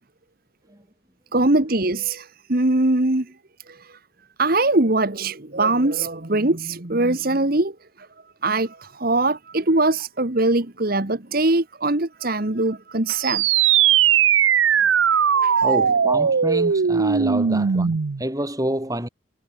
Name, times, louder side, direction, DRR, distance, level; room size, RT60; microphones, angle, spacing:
voice 1, 1.3-3.3 3.7-4.0 4.4-8.1 8.4-13.7 15.4-15.6, right 2 dB, 50° right, 1.6 m, -22 dB
sound 1, 13.2-18.2, right 8 dB, 70° right, 0.6 m, -19 dB
voice 2, 15.3-19.1, right 1 dB, 15° right, 4.3 m, -28 dB
head